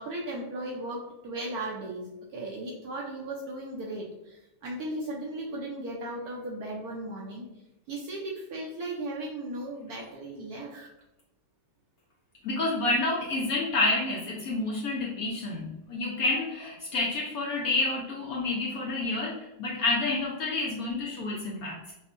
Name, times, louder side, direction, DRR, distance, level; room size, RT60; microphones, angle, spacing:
voice 1, 0.0-7.5 7.9-10.9, right 1 dB, 70° right, -2 dB, 0.9 m, -36 dB
voice 2, 12.4-21.9, left 2 dB, 65° left, -3 dB, 0.9 m, -29 dB
5.3 x 2.1 x 2.5 m, 0.92 s
omnidirectional pair, 2.0 m